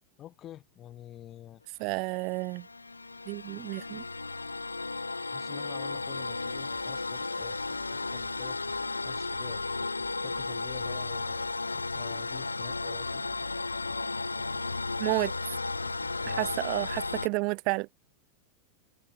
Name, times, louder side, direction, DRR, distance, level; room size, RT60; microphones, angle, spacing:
voice 1, 0.2-1.6 5.3-8.6 9.0-9.6 10.2-13.2 16.2-16.6, left 12 dB, 30° left, 0.6 m, -48 dB
voice 2, 1.8-2.7 3.3-4.0 15.0-15.3 16.4-17.9, right 30 dB, 45° right, 0.3 m, -31 dB
sound 1, 2.0-17.3, left 3 dB, 80° left, 0.4 m, -34 dB
sound 2, 6.6-17.0, left 1 dB, 5° left, 4.5 m, -60 dB
figure-of-eight pair, 90°, 0 cm